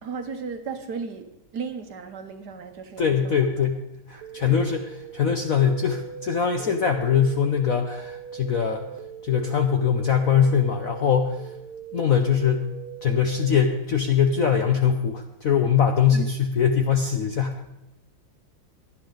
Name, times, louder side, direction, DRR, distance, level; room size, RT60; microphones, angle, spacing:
voice 1, 0.0-3.7 4.1-4.6 16.1-16.3, right 5 dB, 55° right, 7 dB, 1.4 m, -36 dB
voice 2, 3.0-3.8 4.1-8.9 9.2-11.5 11.9-12.7 13.0-17.7, left 7 dB, 60° left, 5 dB, 0.9 m, -22 dB
sound 1, 4.2-13.8, right 7 dB, 85° right, 1.6 m, -40 dB
17.5 x 11.0 x 3.9 m, 0.89 s
omnidirectional pair, 2.3 m